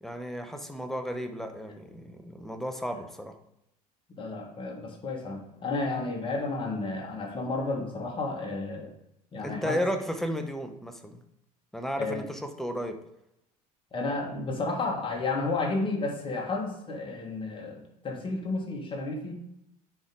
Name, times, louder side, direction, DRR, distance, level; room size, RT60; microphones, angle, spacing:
voice 1, 0.0-3.3 9.4-11.2 11.7-13.0, equal, ahead, 5 dB, 0.8 m, -34 dB
voice 2, 4.1-8.9 9.3-9.7 12.0-12.2 13.9-19.3, left 3 dB, 25° left, 1 dB, 1.6 m, -32 dB
9.8 x 3.6 x 3.7 m, 0.80 s
figure-of-eight pair, 70°, 21 cm